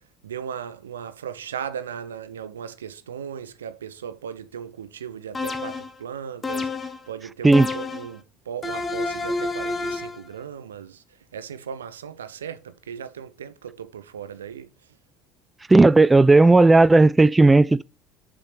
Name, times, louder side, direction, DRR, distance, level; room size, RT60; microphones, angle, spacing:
voice 1, 0.2-11.0 11.3-14.7, right 8 dB, 80° right, 0.7 m, -37 dB
sound 1, 5.3-6.0 6.4-7.1 7.5-8.2 8.6-10.2, left 3 dB, 25° left, 1.0 m, -29 dB
voice 2, 15.7-17.8, right 2 dB, 15° right, 0.4 m, -14 dB
7.4 x 4.6 x 6.6 m
figure-of-eight pair, 60°, 0 cm